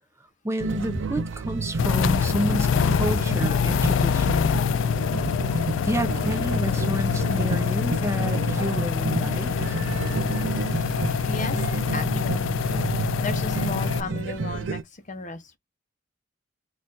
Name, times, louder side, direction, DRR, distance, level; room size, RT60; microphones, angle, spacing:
voice 1, 0.4-4.5 5.8-9.8, right 1 dB, 15° right, 0.8 m, -30 dB
sound 1, 0.6-14.8, right 4 dB, 75° right, 0.5 m, -31 dB
sound 2, 1.8-14.0, left 7 dB, 75° left, 0.3 m, -25 dB
voice 2, 11.2-11.7 11.9-12.6 12.9-15.6, left 3 dB, 40° left, 0.8 m, -35 dB
4.2 x 2.5 x 3.9 m
head